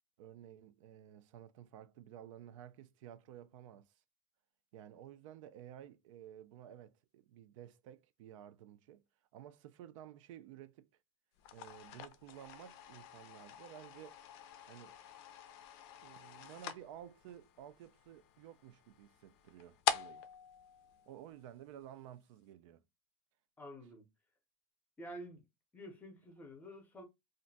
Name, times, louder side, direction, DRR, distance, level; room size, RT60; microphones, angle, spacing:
voice 1, 0.2-3.9 4.7-9.0 9.3-10.9 11.5-14.2 14.7-15.0 16.0-20.3 21.1-22.8, right 10 dB, 80° right, 0.4 m, -53 dB
sound 1, 11.4-21.8, left 10 dB, 55° left, 0.4 m, -44 dB
voice 2, 23.6-24.0 25.0-25.4 25.7-27.0, equal, 10° left, 0.6 m, -49 dB
2.5 x 2.1 x 3.8 m
supercardioid pair, 175°, 16 cm